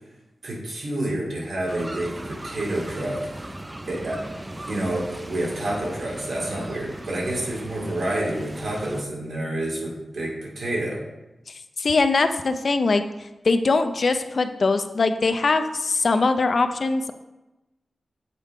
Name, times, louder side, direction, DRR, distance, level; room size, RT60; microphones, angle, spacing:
voice 1, 0.4-3.6 3.9-4.2 4.7-11.0, right 1 dB, 70° right, -3 dB, 2.1 m, -29 dB
sound 1, 1.7-9.0, right 1 dB, 15° right, 0.4 m, -37 dB
voice 2, 11.8-13.0 13.4-17.1, left 3 dB, 55° left, 8 dB, 0.4 m, -21 dB
8.1 x 4.7 x 3.6 m, 1.0 s
wide cardioid pair, 100°, 0 cm